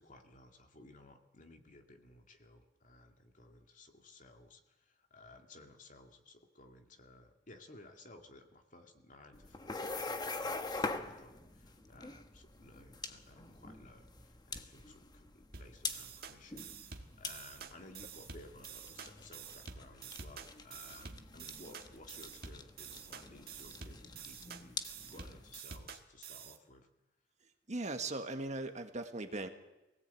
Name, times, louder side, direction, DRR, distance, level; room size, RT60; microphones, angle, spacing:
voice 1, 0.0-24.8 25.1-26.9, left 2 dB, 45° left, 4 dB, 2.3 m, -57 dB
sound 1, 9.3-25.6, left 3 dB, 25° left, 1.2 m, -44 dB
sound 2, 15.5-26.6, right 6 dB, 60° right, 1.7 m, -49 dB
voice 2, 27.7-29.5, right 2 dB, 40° right, 6 dB, 1.6 m, -39 dB
24.0 x 17.5 x 8.4 m, 1.0 s
head